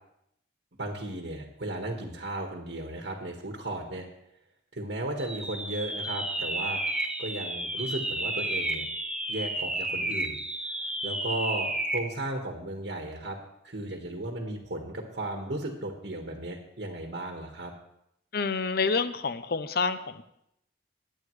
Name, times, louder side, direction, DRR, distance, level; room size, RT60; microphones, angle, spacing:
voice 1, 0.8-4.1 4.7-8.8 9.3-10.4 11.0-13.4 13.6-17.7, right 1 dB, 60° right, 2 dB, 1.5 m, -35 dB
sound 1, 5.2-12.1, right 1 dB, 5° right, 0.8 m, -32 dB
voice 2, 18.3-20.2, left 4 dB, 50° left, 12 dB, 0.6 m, -28 dB
21.0 x 8.7 x 3.2 m, 0.78 s
head